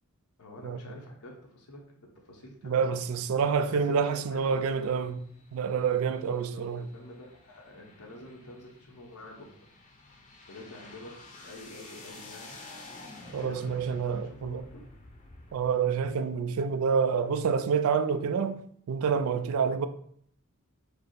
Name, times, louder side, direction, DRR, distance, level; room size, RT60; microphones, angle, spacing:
voice 1, 0.4-1.8 2.1-2.9 3.9-4.6 6.4-9.5 10.5-12.6 13.2-14.8, left 1 dB, 90° left, 1.0 m, -47 dB
voice 2, 2.6-5.2 5.5-6.8 13.3-14.6 15.5-18.6 18.9-19.9, right 6 dB, 65° right, 0.3 m, -27 dB
sound 1, 4.4-16.1, left 2 dB, 35° left, 0.7 m, -51 dB
5.0 x 2.0 x 4.5 m
head